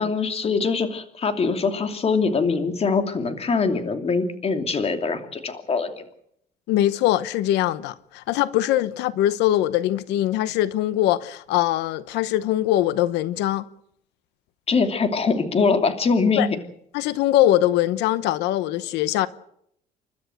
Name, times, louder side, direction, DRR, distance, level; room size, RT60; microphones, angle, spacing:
voice 1, 0.0-6.0 14.7-16.5, left 4 dB, 35° left, 2.8 m, -23 dB
voice 2, 6.7-13.6 16.4-16.5 16.9-19.3, left 13 dB, 90° left, 0.9 m, -22 dB
29.5 x 12.5 x 7.9 m
cardioid pair, 110°, 17 cm